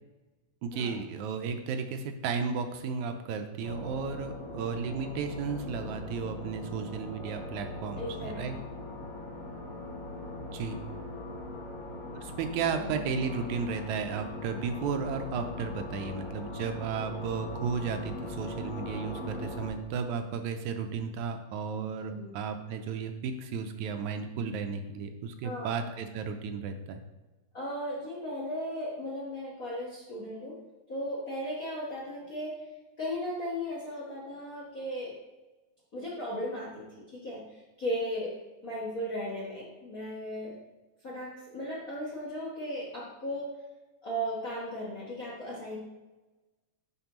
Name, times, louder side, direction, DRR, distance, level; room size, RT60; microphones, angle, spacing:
voice 1, 0.6-8.6 10.5-10.8 12.2-27.0, right 6 dB, 85° right, 6 dB, 2.0 m, -34 dB
sound 1, 3.6-19.7, left 2 dB, 65° left, 2.8 m, -40 dB
voice 2, 8.0-8.4 12.8-13.0 22.1-22.3 25.4-25.8 27.5-30.6 30.9-32.6 33.0-35.1 35.9-38.4 38.6-40.5 41.0-43.5 44.0-45.8, equal, 45° left, -5 dB, 1.1 m, -36 dB
10.5 x 4.3 x 3.0 m, 1.1 s
omnidirectional pair, 3.4 m